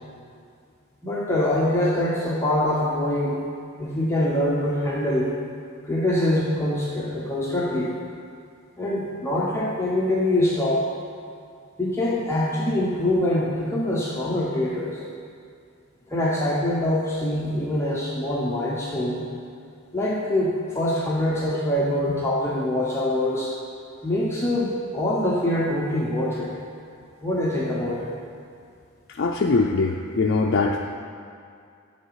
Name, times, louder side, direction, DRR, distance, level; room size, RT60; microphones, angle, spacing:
voice 1, 1.0-3.4 3.8-5.3 5.9-7.9 8.8-10.9 11.8-15.0 16.1-19.2 19.9-23.5 24.0-26.5 27.2-28.1, left 1 dB, 15° left, -6 dB, 0.9 m, -24 dB
voice 2, 29.1-30.8, left 3 dB, 55° left, 0 dB, 0.4 m, -22 dB
12.0 x 4.0 x 4.8 m, 2.3 s
head